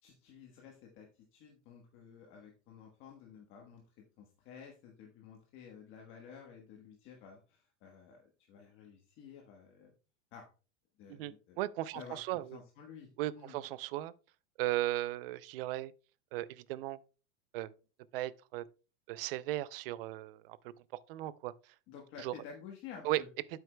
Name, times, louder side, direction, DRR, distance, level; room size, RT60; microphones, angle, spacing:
voice 1, 0.0-9.9 10.3-10.5 11.0-11.6 11.9-12.2 12.5-13.1 13.4-13.6 21.9-23.3, left 7 dB, 35° left, 1.3 m, -52 dB
voice 2, 11.1-12.5 13.2-14.1 14.6-15.9 16.3-17.0 17.5-17.7 18.1-18.7 19.1-20.7 21.1-21.5 22.2-22.3 23.0-23.2, right 16 dB, 55° right, 0.5 m, -36 dB
9.4 x 7.9 x 2.2 m
supercardioid pair, 160°, 36 cm